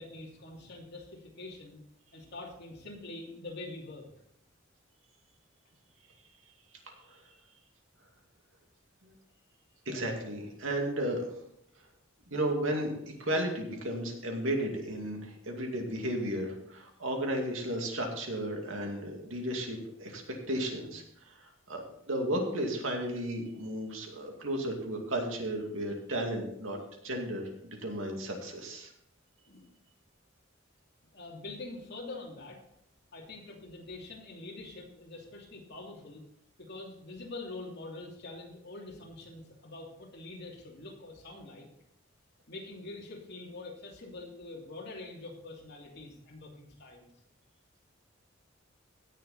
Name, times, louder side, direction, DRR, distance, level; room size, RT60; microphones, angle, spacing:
voice 1, 0.0-1.8 2.1-4.1 29.4-29.7 31.1-32.6 33.1-36.2 36.6-41.7 42.5-47.1, left 2 dB, 55° left, -1 dB, 2.8 m, -45 dB
voice 2, 9.9-11.3 12.3-20.2 20.5-21.4 21.7-26.8 27.0-28.9, right 1 dB, 75° right, 2 dB, 2.4 m, -34 dB
16.5 x 6.7 x 4.2 m, 0.72 s
head